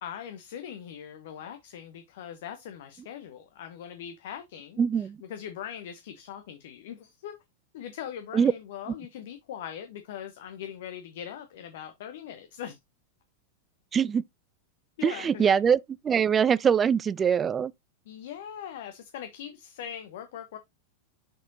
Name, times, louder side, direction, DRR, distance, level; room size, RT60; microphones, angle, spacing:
voice 1, 0.0-7.4 7.7-12.8 15.0-15.6 18.1-20.6, left 9 dB, 55° left, 1.0 m, -41 dB
voice 2, 4.8-5.2 8.3-8.5 13.9-14.2 15.0-15.8 16.0-17.7, right 7 dB, 20° right, 0.4 m, -23 dB
6.5 x 6.3 x 2.8 m
figure-of-eight pair, 90°, 0 cm